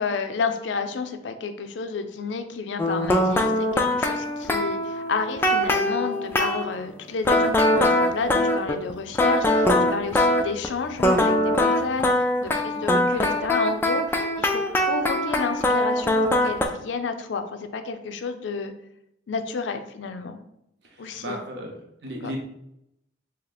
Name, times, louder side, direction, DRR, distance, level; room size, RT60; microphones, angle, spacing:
voice 1, 0.0-18.7 19.3-20.4 21.0-21.4 22.2-22.3, left 5 dB, 85° left, 8 dB, 0.4 m, -31 dB
sound 1, 2.8-6.7 7.3-10.7 11.0-16.7, left 1 dB, 10° left, 0.3 m, -22 dB
voice 2, 20.8-22.4, equal, 65° right, 1 dB, 0.9 m, -36 dB
2.9 x 2.7 x 4.0 m, 0.80 s
head